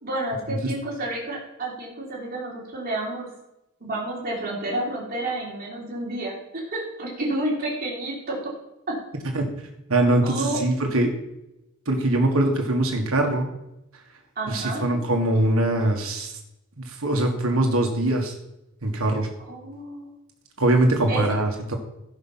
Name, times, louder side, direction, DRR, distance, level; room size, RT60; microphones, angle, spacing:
voice 1, 0.0-3.3 3.8-8.5 8.9-9.0 10.2-10.6 14.3-15.0 19.4-20.1 21.1-21.2, right 1 dB, 45° right, -4 dB, 3.3 m, -30 dB
voice 2, 9.9-11.1 11.8-13.5 14.5-16.3 16.8-18.3 18.8-19.3 20.6-21.8, right 1 dB, 65° right, 3 dB, 1.6 m, -22 dB
16.0 x 5.5 x 5.6 m, 0.89 s
head